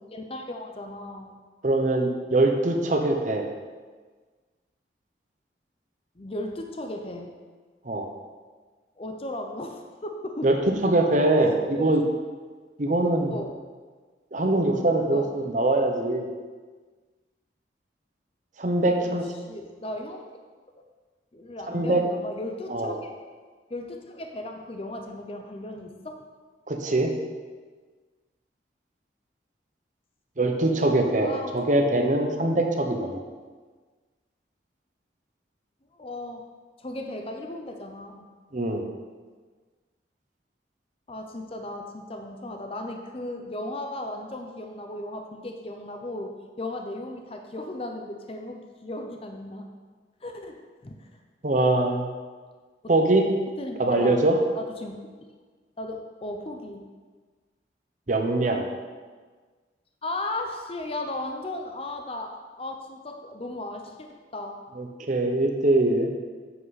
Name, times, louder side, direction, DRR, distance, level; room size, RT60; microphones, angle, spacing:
voice 1, 0.1-1.4 6.2-7.3 9.0-10.5 11.4-11.9 13.3-13.5 15.1-15.3 19.0-19.2 19.5-20.3 21.3-23.1 23.7-26.2 31.2-31.6 35.9-36.5 36.8-38.3 41.1-49.7 50.2-51.1 52.8-52.9 53.6-54.2 54.5-55.0 55.8-56.8 60.0-64.6, left 1 dB, 30° left, 4 dB, 0.6 m, -36 dB
voice 2, 1.6-3.5 7.8-8.1 10.4-10.5 10.8-12.0 12.8-13.3 14.3-16.3 18.6-19.3 21.7-22.0 22.7-23.0 26.7-27.1 30.4-33.2 38.5-38.8 51.4-52.1 52.9-53.3 53.8-54.4 58.1-58.7 64.8-66.1, right 2 dB, 45° right, 4 dB, 0.8 m, -23 dB
8.1 x 7.5 x 4.1 m, 1.4 s
head